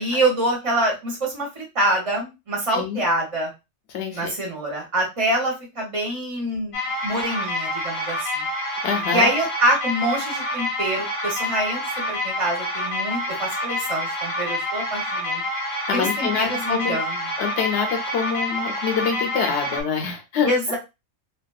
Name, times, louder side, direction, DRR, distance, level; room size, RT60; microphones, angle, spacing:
voice 1, 0.0-3.5 4.1-6.8 7.0-8.5 9.1-15.4 15.9-17.2 20.4-20.8, right 1 dB, 30° right, -2 dB, 0.7 m, -25 dB
voice 2, 2.7-3.0 3.9-4.3 8.8-9.3 15.9-17.0 17.4-20.8, left 6 dB, 65° left, 4 dB, 0.8 m, -26 dB
sound 1, 6.7-19.8, left 1 dB, 35° left, 0.6 m, -27 dB
2.6 x 2.3 x 2.2 m, 0.25 s
omnidirectional pair, 1.4 m